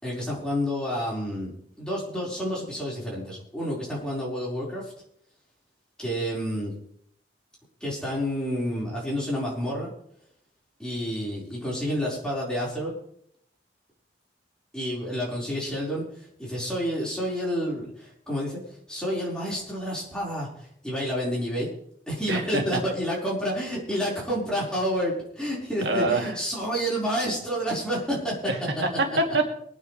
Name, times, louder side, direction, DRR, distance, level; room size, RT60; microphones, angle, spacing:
voice 1, 0.0-4.9 6.0-6.7 7.8-9.9 10.8-12.9 14.7-21.7 22.1-28.4, equal, 5° left, -5 dB, 4.8 m, -29 dB
voice 2, 22.3-22.8 25.8-26.3 28.5-29.5, right 2 dB, 85° right, 2 dB, 2.5 m, -25 dB
24.0 x 9.4 x 3.3 m, 0.69 s
head